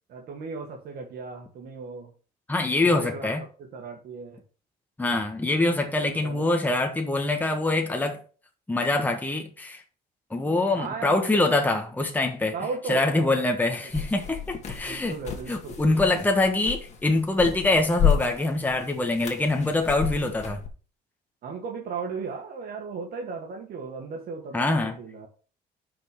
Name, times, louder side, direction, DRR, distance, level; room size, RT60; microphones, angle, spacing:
voice 1, 0.1-2.1 2.8-3.3 3.6-4.4 5.7-5.8 6.2-6.5 10.7-11.3 12.5-13.7 14.8-16.2 21.4-25.3, right 5 dB, 60° right, 1.8 m, -36 dB
voice 2, 2.5-3.4 5.0-8.2 8.7-9.8 10.3-12.5 12.9-15.2 15.5-20.6 24.5-25.0, left 2 dB, 10° left, 1.4 m, -24 dB
sound 1, 13.9-20.7, left 8 dB, 45° left, 1.9 m, -31 dB
5.9 x 5.1 x 6.7 m
cardioid pair, 110°, 17 cm